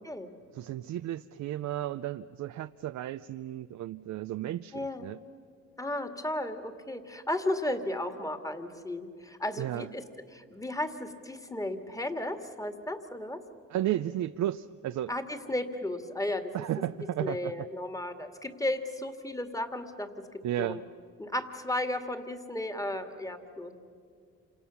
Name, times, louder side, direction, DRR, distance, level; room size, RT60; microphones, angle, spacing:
voice 1, 0.5-5.2 9.6-9.9 13.7-15.1 16.5-17.7 20.4-20.8, right 13 dB, 70° right, 10 dB, 0.6 m, -33 dB
voice 2, 4.7-5.1 5.8-10.0 10.3-13.4 15.1-16.5 17.2-20.8 21.2-23.7, left 1 dB, 10° left, 7 dB, 2.2 m, -34 dB
28.0 x 26.5 x 7.1 m, 2.2 s
cardioid pair, 90°, 30 cm